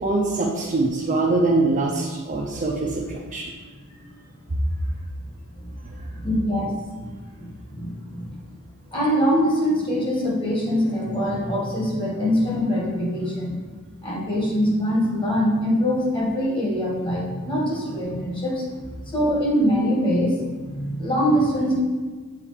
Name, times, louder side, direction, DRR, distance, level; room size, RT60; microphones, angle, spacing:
voice 1, 0.0-3.5 4.5-4.6 5.8-6.0, right 2 dB, 35° right, -3 dB, 0.7 m, -23 dB
voice 2, 6.2-7.1 7.3-8.4 8.9-13.6 14.0-18.6 19.1-21.8, equal, 25° left, -4 dB, 1.8 m, -23 dB
7.2 x 3.9 x 4.9 m, 1.4 s
head